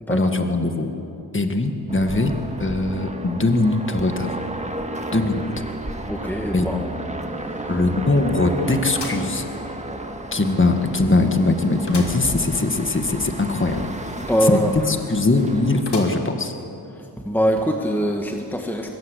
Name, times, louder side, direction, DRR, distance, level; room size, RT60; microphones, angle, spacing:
voice 1, 0.1-0.9 1.3-2.3 2.6-4.4 5.1-5.4 6.5-6.7 7.7-9.4 10.3-14.2 14.4-16.5, left 2 dB, 30° left, 5 dB, 1.8 m, -21 dB
sound 1, 1.9-15.8, right 1 dB, 15° right, 1.8 m, -32 dB
voice 2, 6.1-7.0 7.4-7.7 14.2-14.7 17.0-19.0, equal, 5° left, 3 dB, 1.6 m, -23 dB
sound 2, 6.7-6.8 7.2-7.3 8.9-10.0 10.5-10.6 11.9-12.3 12.7-12.8 13.0-13.1 15.9-16.5 17.1-17.2 18.1-18.2, left 3 dB, 70° left, 3.6 m, -36 dB
23.0 x 21.0 x 8.2 m, 2.8 s
wide cardioid pair, 85°, 42 cm